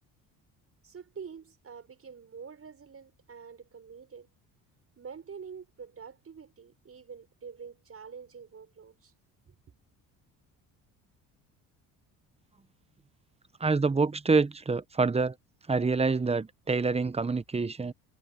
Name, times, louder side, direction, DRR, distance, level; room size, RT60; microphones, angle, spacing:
voice 1, 0.8-4.3 5.0-9.1 9.5-9.6, right 6 dB, 35° right, 6.5 m, -46 dB
voice 2, 13.6-15.4 15.7-17.9, right 4 dB, 15° right, 1.1 m, -26 dB
supercardioid pair, 80°, 39 cm